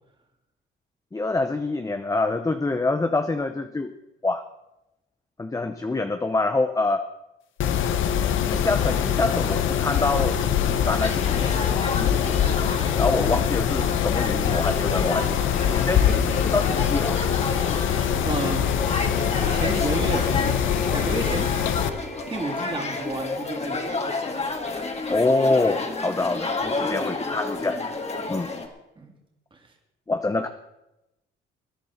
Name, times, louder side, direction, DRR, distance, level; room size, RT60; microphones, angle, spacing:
voice 1, 1.1-3.9 4.2-4.4 5.4-7.1 8.4-10.4 10.7-12.1 12.9-17.2 25.1-27.8 28.3-28.5 30.1-30.5, left 2 dB, 15° left, 7 dB, 0.8 m, -26 dB
Mechanisms, 7.6-21.9, left 9 dB, 80° left, 0.9 m, -23 dB
sound 1, 8.8-28.7, left 3 dB, 35° left, 2.1 m, -31 dB
sound 2, 14.9-24.0, right 1 dB, 5° right, 2.6 m, -43 dB
voice 2, 18.2-18.6 19.5-20.3 20.9-21.5 22.3-23.8 29.0-29.1 29.5-29.6, right 2 dB, 25° right, 1 dB, 2.8 m, -30 dB
20.5 x 10.5 x 4.4 m, 0.91 s
cardioid pair, 90°, 20 cm